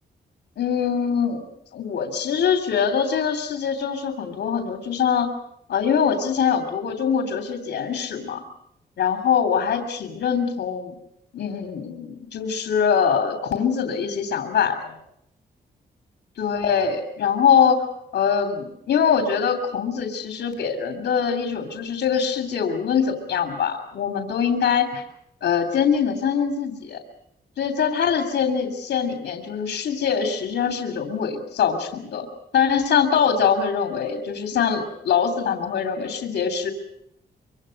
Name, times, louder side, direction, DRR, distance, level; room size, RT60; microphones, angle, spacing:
voice 1, 0.6-1.4 1.7-5.3 5.7-8.4 9.0-11.0 11.3-14.9 16.4-17.8 18.1-25.0 25.4-27.0 27.6-32.3 32.5-36.7, left 7 dB, 85° left, 6 dB, 3.1 m, -23 dB
25.0 x 24.5 x 6.6 m, 0.78 s
wide cardioid pair, 135°, 17 cm